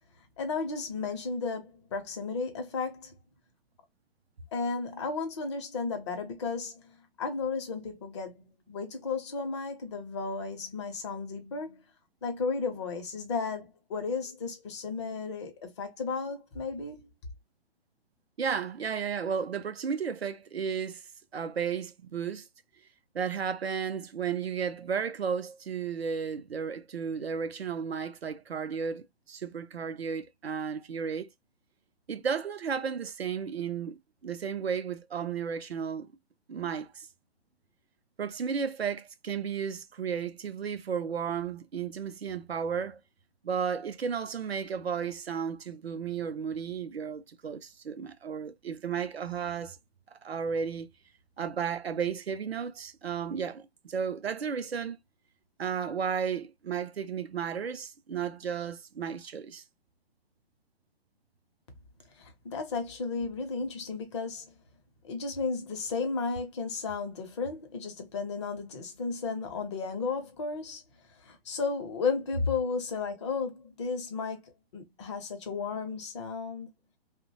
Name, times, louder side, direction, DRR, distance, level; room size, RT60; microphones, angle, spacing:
voice 1, 0.4-3.1 4.5-11.8 12.2-17.1 62.2-64.5 65.0-70.8 71.2-76.7, left 4 dB, 30° left, 0.6 m, -34 dB
voice 2, 18.4-21.0 21.3-22.5 23.1-31.3 32.1-36.1 36.5-37.1 38.2-43.0 43.4-49.8 50.2-50.9 51.4-55.0 55.6-59.6, right 7 dB, 85° right, 0.5 m, -33 dB
2.6 x 2.1 x 2.7 m
figure-of-eight pair, 125°, 30 cm